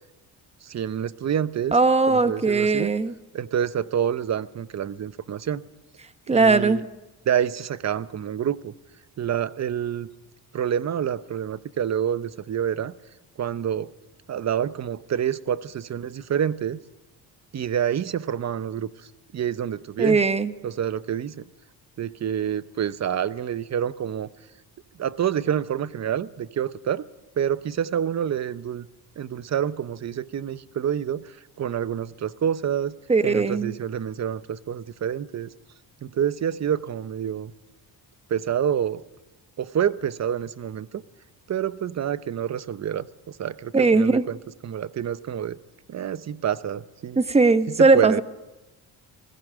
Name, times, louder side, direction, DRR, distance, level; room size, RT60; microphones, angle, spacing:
voice 1, 0.6-1.8 2.1-2.9 3.3-5.6 6.3-6.8 7.3-8.7 9.2-10.1 10.5-12.9 13.4-13.9 14.3-16.8 17.5-18.9 19.3-20.2 20.6-21.5 22.0-24.3 25.0-27.0 27.4-28.9 29.2-32.9 33.2-35.5 36.0-37.5 38.3-39.0 39.6-41.0 41.5-44.4 44.6-45.6 45.9-47.2 47.8-48.2, right 9 dB, 40° right, 16 dB, 0.8 m, -27 dB
voice 2, 1.7-3.1 6.3-6.8 20.0-20.5 33.1-33.7 43.7-44.2 47.2-48.2, right 3 dB, 15° right, 11 dB, 1.1 m, -19 dB
20.5 x 15.5 x 9.0 m, 1.1 s
cardioid pair, 85°, 40 cm